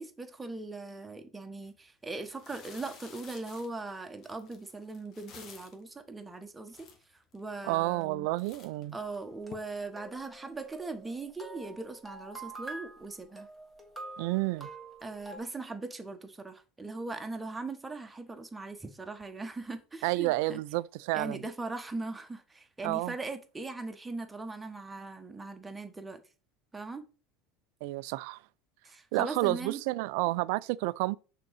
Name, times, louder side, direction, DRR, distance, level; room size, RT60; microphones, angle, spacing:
voice 1, 0.0-6.9 7.1-8.3 8.9-13.5 15.0-20.6 21.1-26.2 26.7-27.0 28.8-29.8, right 3 dB, 15° right, 1.2 m, -40 dB
sound 1, 1.5-1.7 2.1-5.9 6.4-6.5 6.7-7.4 7.9-8.1 8.4-9.5, left 6 dB, 45° left, 1.4 m, -52 dB
voice 2, 7.6-9.0 14.2-14.7 20.0-21.4 22.8-23.1 27.8-28.4 29.1-31.2, right 19 dB, 65° right, 0.3 m, -30 dB
sound 2, 9.0-15.4, right 3 dB, 5° left, 2.0 m, -46 dB
5.9 x 3.8 x 4.8 m
hypercardioid pair, 75°, 0 cm